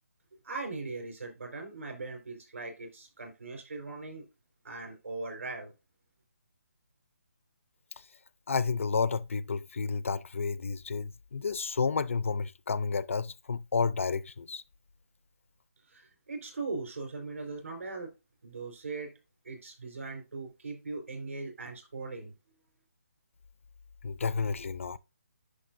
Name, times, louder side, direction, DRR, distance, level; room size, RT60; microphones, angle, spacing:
voice 1, 0.4-4.2 4.6-5.7 15.9-18.1 18.4-19.1 19.4-22.3, right 3 dB, 70° right, 4.3 m, -39 dB
voice 2, 8.5-14.6 24.0-25.0, left 5 dB, 60° left, 0.4 m, -31 dB
10.0 x 5.2 x 2.6 m
hypercardioid pair, 175°, 8 cm